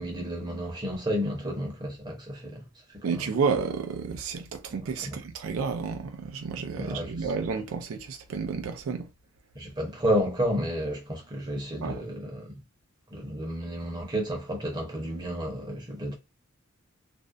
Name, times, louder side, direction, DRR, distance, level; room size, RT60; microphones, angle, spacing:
voice 1, 0.0-3.4 4.8-5.2 6.8-7.5 9.5-12.6 13.1-16.2, equal, 20° right, 0.7 m, -31 dB
voice 2, 3.0-9.1 11.8-12.0, right 5 dB, 75° right, 0.4 m, -31 dB
2.4 x 2.1 x 2.4 m
head